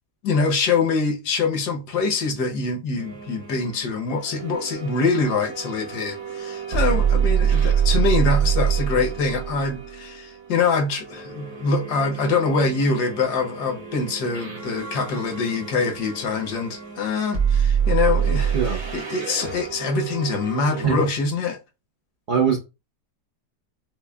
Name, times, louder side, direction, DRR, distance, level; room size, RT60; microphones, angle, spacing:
voice 1, 0.2-18.6 18.9-21.6, left 4 dB, 80° left, 1.4 m, -24 dB
sound 1, 3.0-20.8, right 7 dB, 60° right, 1.6 m, -26 dB
voice 2, 18.5-18.8 20.8-21.0 22.3-22.6, right 7 dB, 85° right, 0.4 m, -21 dB
6.0 x 2.2 x 2.2 m
omnidirectional pair, 1.7 m